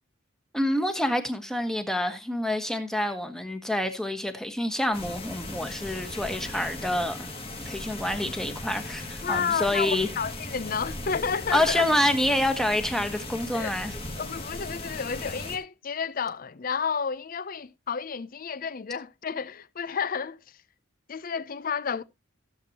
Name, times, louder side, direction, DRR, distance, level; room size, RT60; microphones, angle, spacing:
voice 1, 0.5-7.4 7.6-10.1 11.5-13.9, left 1 dB, 5° left, 1.3 m, -27 dB
sound 1, 4.9-15.6, left 2 dB, 30° left, 2.0 m, -37 dB
voice 2, 9.2-11.8 13.5-13.7 14.2-20.4 21.1-22.0, left 6 dB, 45° left, 0.5 m, -31 dB
15.5 x 7.7 x 2.9 m
head